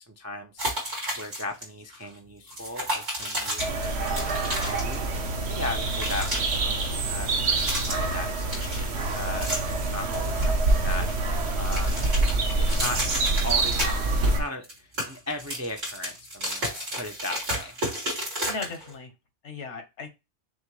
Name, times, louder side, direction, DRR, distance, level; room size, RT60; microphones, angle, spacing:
voice 1, 0.1-12.2 12.6-13.0 13.4-17.7, left 2 dB, 25° right, 0.3 m, -38 dB
sound 1, 0.6-1.6 1.9-2.1 2.5-5.3 5.5-6.6 7.3-8.2 8.5-9.8 10.1-11.2 11.5-14.3 14.6-18.9, equal, 90° right, 2.7 m, -32 dB
sound 2, 3.6-14.4, right 2 dB, 65° right, 1.1 m, -26 dB
voice 2, 18.2-19.1 19.4-20.1, left 4 dB, 75° left, 1.4 m, -37 dB
6.2 x 2.2 x 3.1 m
omnidirectional pair, 1.2 m